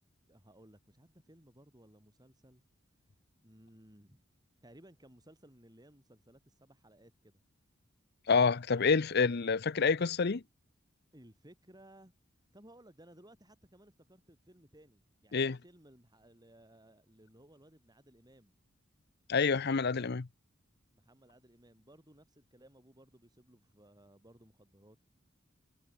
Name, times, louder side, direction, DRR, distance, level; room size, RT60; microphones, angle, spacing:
voice 1, 0.3-2.6 3.4-4.2 4.6-7.4 11.1-12.1 12.5-18.5 20.9-25.0, right 1 dB, 20° right, 7.8 m, -60 dB
voice 2, 8.3-10.4 15.3-15.6 19.3-20.3, left 5 dB, 55° left, 0.7 m, -28 dB
head